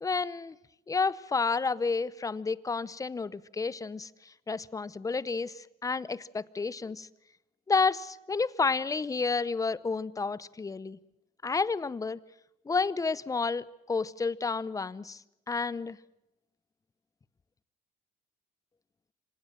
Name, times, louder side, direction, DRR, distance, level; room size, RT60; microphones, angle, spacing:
voice 1, 0.0-0.6 0.9-4.1 4.5-7.1 7.7-11.0 11.4-12.2 12.7-15.2 15.5-16.0, left 4 dB, 20° left, 19 dB, 0.7 m, -30 dB
26.0 x 18.0 x 7.3 m, 0.88 s
cardioid pair, 110°, 17 cm